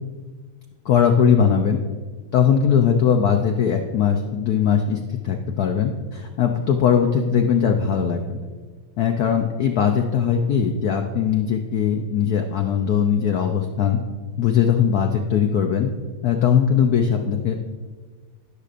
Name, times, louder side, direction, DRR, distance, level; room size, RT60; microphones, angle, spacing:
voice 1, 0.8-1.8 2.3-8.4 9.0-14.0 14.4-15.9 16.2-17.6, left 7 dB, 80° left, 4 dB, 0.8 m, -20 dB
18.0 x 6.7 x 2.5 m, 1.4 s
omnidirectional pair, 2.3 m